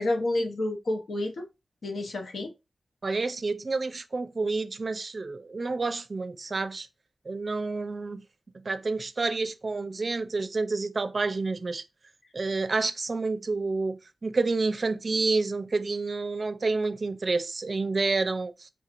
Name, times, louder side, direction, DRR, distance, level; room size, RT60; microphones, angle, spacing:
voice 1, 0.0-1.5 1.8-2.5, left 1 dB, 80° left, 0.7 m, -29 dB
voice 2, 3.0-6.9 7.3-8.2 8.5-11.8 12.3-18.7, right 3 dB, 55° right, 0.4 m, -29 dB
4.5 x 2.9 x 2.4 m
cardioid pair, 60°, 0 cm